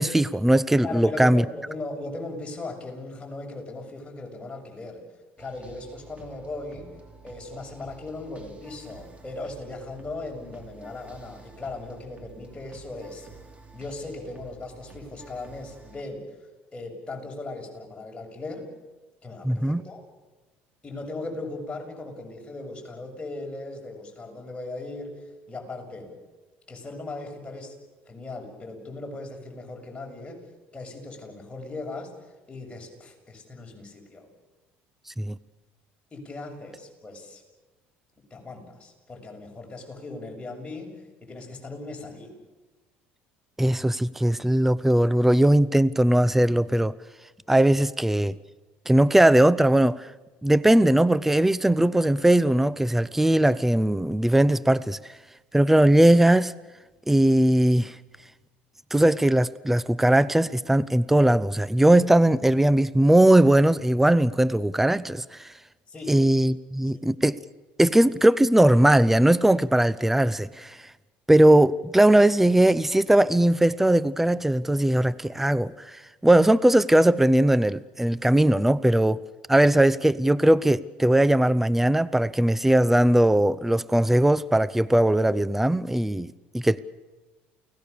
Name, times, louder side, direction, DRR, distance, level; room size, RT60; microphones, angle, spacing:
voice 1, 0.0-1.4 19.4-19.8 35.2-35.3 43.6-46.9 47.5-48.3 48.9-50.1 50.4-55.0 55.5-56.5 57.1-57.9 58.9-65.5 66.1-67.4 67.8-70.8 71.3-75.7 76.2-79.2 79.5-86.3 86.5-86.8, right 1 dB, 5° right, 18 dB, 0.7 m, -19 dB
voice 2, 0.8-5.0 5.4-6.9 7.2-13.3 13.7-16.2 16.7-18.7 19.2-20.1 20.8-26.1 26.7-27.7 28.1-30.4 30.7-34.3 36.1-37.4 38.3-42.3 65.9-66.2 66.9-67.1, left 2 dB, 20° left, 1 dB, 7.1 m, -38 dB
sound 1, 5.4-16.0, right 4 dB, 25° right, 4.5 m, -49 dB
29.0 x 18.5 x 7.0 m, 1.2 s
supercardioid pair, 95°, 5 cm